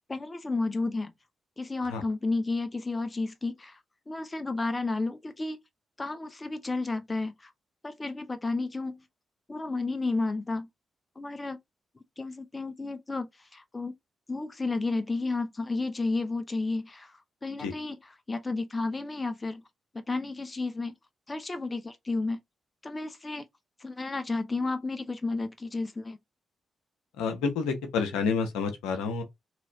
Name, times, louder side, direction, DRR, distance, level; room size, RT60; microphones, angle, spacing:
voice 1, 0.1-1.1 1.6-3.8 4.1-5.6 6.0-7.5 7.8-9.0 9.5-10.7 11.2-11.6 12.2-13.9 14.3-18.0 18.3-19.6 19.9-20.9 21.3-22.4 22.8-23.5 23.8-26.2, left 3 dB, 30° left, 0.7 m, -32 dB
voice 2, 27.2-29.2, left 5 dB, 80° left, 0.9 m, -29 dB
3.1 x 3.0 x 3.8 m
hypercardioid pair, 40°, 0 cm